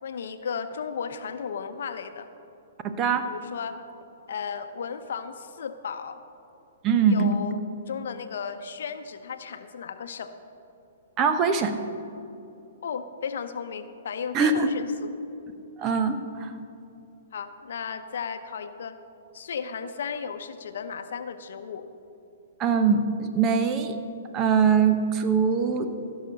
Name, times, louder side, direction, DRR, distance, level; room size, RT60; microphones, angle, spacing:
voice 1, 0.0-2.3 3.3-3.8 4.3-6.2 7.1-7.6 7.9-10.3 12.8-15.1 17.3-19.0 19.3-21.9, left 6 dB, 70° left, 9 dB, 0.8 m, -35 dB
voice 2, 2.8-3.3 6.8-7.3 11.2-11.8 14.3-14.7 15.8-16.5 22.6-24.0 24.3-25.9, right 6 dB, 30° right, 8 dB, 0.9 m, -22 dB
15.5 x 6.5 x 5.9 m, 2.7 s
hypercardioid pair, 130°, 0 cm